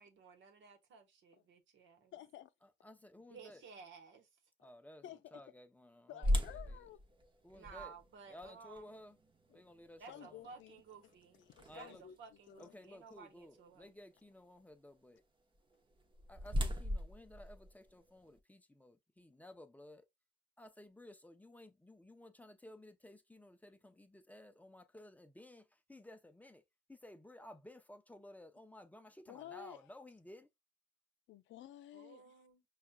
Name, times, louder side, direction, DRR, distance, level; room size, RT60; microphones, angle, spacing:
voice 1, 0.0-2.1 3.3-4.3 7.5-8.9 10.0-11.4 11.7-13.9 31.9-32.6, right 5 dB, 70° right, 1.1 m, -56 dB
voice 2, 2.1-2.5 5.0-5.4 6.1-7.0 9.5-9.6 10.1-10.8 11.0-12.2 12.5-12.8 29.3-29.9 31.3-32.4, left 11 dB, 75° left, 0.5 m, -53 dB
voice 3, 2.6-3.6 4.6-5.0 5.3-6.9 7.4-7.9 8.3-9.2 9.5-10.4 11.7-12.0 12.6-15.2 16.3-20.1 20.6-26.6 26.9-30.5, left 1 dB, 10° left, 0.5 m, -56 dB
sound 1, 6.2-12.2 12.7-12.8 13.4-13.7 15.7-18.4, left 1 dB, 25° right, 0.8 m, -39 dB
5.6 x 2.4 x 2.2 m
cardioid pair, 90°, 20 cm